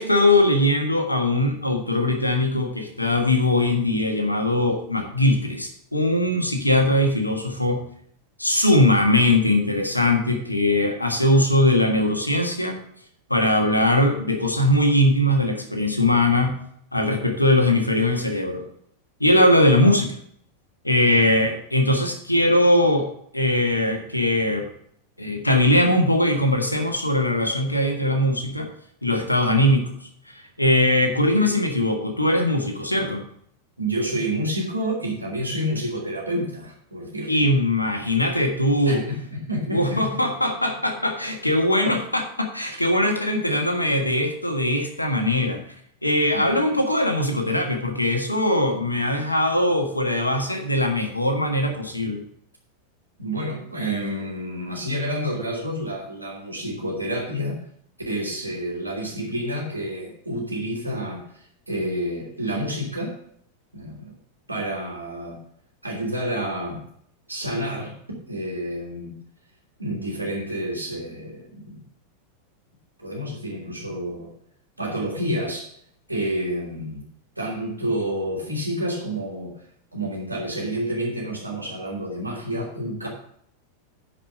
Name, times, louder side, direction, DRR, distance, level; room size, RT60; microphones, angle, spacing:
voice 1, 0.0-7.8 8.4-12.8 13.3-16.6 16.9-18.7 19.2-20.2 20.8-24.7 25.2-28.7 29.0-29.9 30.3-33.2 37.3-39.0 39.7-45.6 46.0-52.2, left 1 dB, 85° left, 4 dB, 1.5 m, -21 dB
voice 2, 33.8-37.5 38.8-40.2 46.3-46.6 53.2-57.6 58.1-63.2 63.7-64.2 64.5-65.4 65.8-66.8 67.3-68.0 68.3-69.2 69.8-71.5 71.7-71.8 73.0-74.3 74.8-75.7 76.1-77.0 77.4-79.5 79.9-83.1, equal, 85° right, -2 dB, 2.8 m, -29 dB
10.0 x 5.0 x 6.5 m, 0.66 s
figure-of-eight pair, 90°, 0 cm